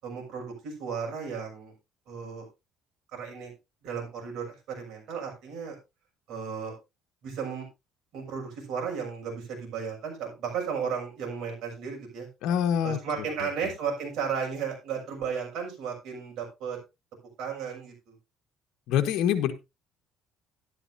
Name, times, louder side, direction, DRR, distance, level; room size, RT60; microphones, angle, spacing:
voice 1, 0.0-1.7 2.1-2.5 3.1-3.5 3.8-5.8 6.3-6.7 7.2-7.7 8.1-12.3 12.8-16.8 17.4-18.1, right 6 dB, 65° right, 1 dB, 6.3 m, -34 dB
voice 2, 12.4-13.0 13.4-13.5 18.9-19.5, left 9 dB, 75° left, 6 dB, 1.4 m, -25 dB
12.0 x 11.5 x 2.7 m, 0.24 s
cardioid pair, 125°, 0 cm